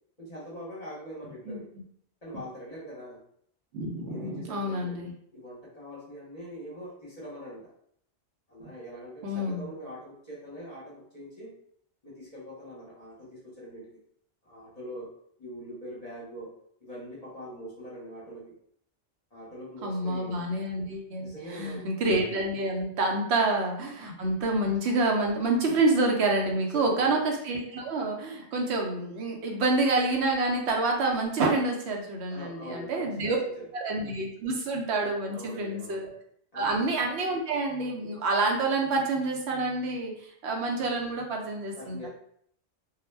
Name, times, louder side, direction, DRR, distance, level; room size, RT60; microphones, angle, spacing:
voice 1, 0.2-1.7 2.2-3.2 4.1-5.0 5.3-7.7 8.5-11.5 12.0-14.0 14.4-15.1 15.4-16.5 16.8-18.6 19.3-20.4 21.2-21.9 23.1-23.3 26.5-27.3 32.3-33.7 35.3-36.0 36.5-36.9 41.8-42.1, equal, 40° left, -6 dB, 0.7 m, -43 dB
voice 2, 3.7-5.1 9.2-9.7 19.8-33.4 33.7-36.1 36.5-40.1 40.4-42.1, right 2 dB, 70° right, 1 dB, 0.8 m, -28 dB
2.3 x 2.1 x 3.2 m, 0.67 s
omnidirectional pair, 1.2 m